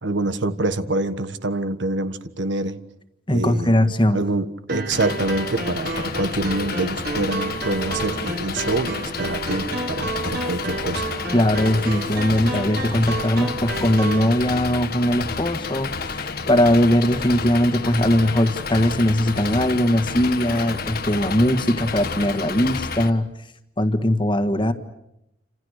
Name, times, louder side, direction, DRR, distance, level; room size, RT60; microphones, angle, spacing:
voice 1, 0.0-2.8 3.3-3.7 4.1-11.1, right 2 dB, 75° right, 11 dB, 1.5 m, -26 dB
voice 2, 3.3-4.2 11.3-23.3 23.8-24.7, left 1 dB, 25° left, 9 dB, 1.7 m, -20 dB
sound 1, 4.7-14.3, right 2 dB, 55° right, 4.4 m, -31 dB
Engine, 4.9-23.1, left 4 dB, 55° left, 1.4 m, -30 dB
29.5 x 27.0 x 6.6 m, 0.83 s
head